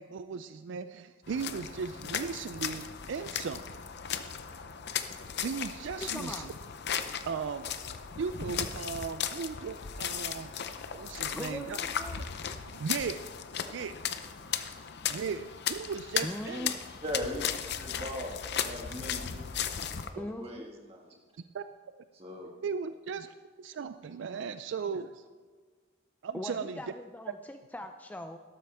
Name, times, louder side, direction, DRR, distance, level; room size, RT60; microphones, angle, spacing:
voice 1, 0.0-3.8 5.4-6.5 7.3-7.6 8.2-10.5 10.9-11.8 12.1-12.3 12.7-13.2 13.7-14.0 15.1-16.7 18.9-19.0 19.8-19.9 21.5-21.6 22.6-25.2 26.2-26.8, right 5 dB, 65° right, 11 dB, 0.4 m, -37 dB
sound 1, 1.3-20.1, left 8 dB, 55° left, 0.6 m, -36 dB
voice 2, 6.0-6.5 11.3-12.2 16.2-16.8 20.2-20.6 22.2-22.3 26.3-28.4, left 1 dB, 10° left, 6 dB, 0.4 m, -40 dB
voice 3, 17.0-17.4 17.8-19.4 20.1-21.0 22.1-22.5, equal, 30° right, 0 dB, 1.8 m, -39 dB
12.5 x 12.5 x 3.5 m, 1.5 s
head